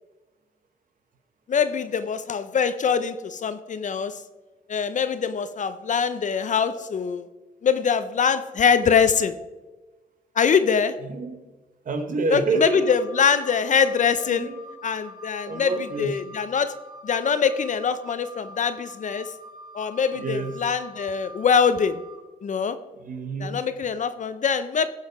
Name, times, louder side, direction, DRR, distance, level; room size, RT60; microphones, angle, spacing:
voice 1, 1.5-4.1 4.7-7.3 7.6-9.3 10.4-11.0 12.3-14.5 14.8-15.7 16.0-16.7 17.0-19.3 19.7-22.0 22.4-22.8 23.4-24.9, left 6 dB, 55° left, 11 dB, 0.6 m, -23 dB
voice 2, 11.0-11.4 11.8-13.0 13.3-13.4 14.2-14.6 15.4-16.2 20.1-20.6 23.0-23.6, right 3 dB, 60° right, 7 dB, 1.4 m, -28 dB
Wind instrument woodwind instrument, 12.6-22.2, equal, 25° right, 1.9 m, -45 dB
15.0 x 5.6 x 4.7 m, 1.2 s
cardioid pair, 105°, 16 cm